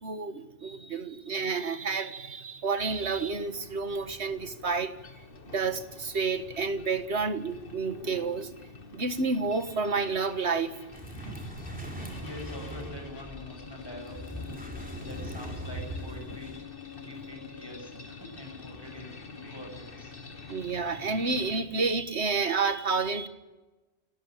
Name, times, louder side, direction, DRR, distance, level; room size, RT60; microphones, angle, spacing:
voice 1, 0.0-4.9 5.5-8.5 8.9-10.7 20.5-23.3, right 4 dB, 85° right, 1.9 m, -30 dB
sound 1, 3.1-21.6, left 5 dB, 55° left, 2.0 m, -47 dB
sound 2, 10.9-16.6, right 1 dB, 10° right, 4.0 m, -40 dB
voice 2, 11.1-11.4 11.7-14.6 15.0-16.6 16.9-20.1, left 1 dB, 20° left, 7.9 m, -45 dB
29.0 x 14.0 x 10.0 m
omnidirectional pair, 1.1 m